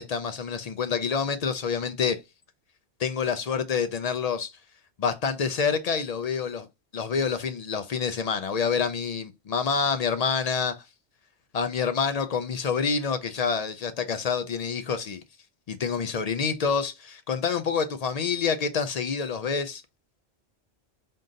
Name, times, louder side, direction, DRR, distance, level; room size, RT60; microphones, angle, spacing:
voice 1, 0.0-2.2 3.0-4.5 5.0-6.7 6.9-10.8 11.5-15.2 15.7-19.8, left 6 dB, 60° left, 0.4 m, -27 dB
3.7 x 2.6 x 3.8 m
omnidirectional pair, 1.1 m